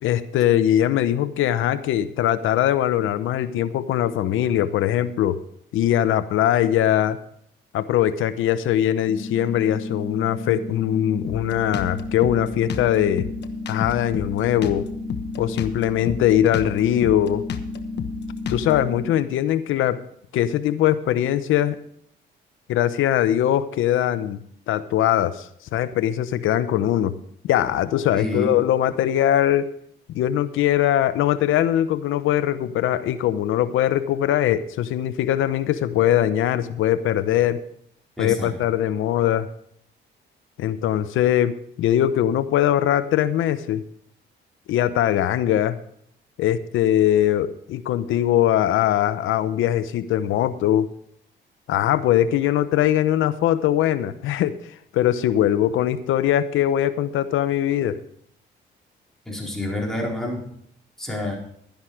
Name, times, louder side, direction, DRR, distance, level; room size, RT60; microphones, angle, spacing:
voice 1, 0.0-5.4 5.7-7.2 7.7-13.3 13.7-14.9 15.4-17.4 18.5-20.0 20.3-21.8 22.7-27.2 27.4-29.7 30.1-37.6 38.2-39.5 40.6-43.8 44.7-45.8 46.4-50.9 51.7-54.6 54.9-58.0, left 11 dB, 85° left, 13 dB, 0.9 m, -21 dB
sound 1, 9.1-19.1, left 2 dB, 45° right, 6.2 m, -33 dB
Drum kit, 11.3-18.9, left 7 dB, 60° left, 1.2 m, -32 dB
voice 2, 28.1-28.6 38.2-38.5 59.3-60.4 61.0-61.4, left 1 dB, ahead, -2 dB, 4.5 m, -28 dB
12.0 x 10.5 x 4.9 m, 0.67 s
cardioid pair, 90°, 20 cm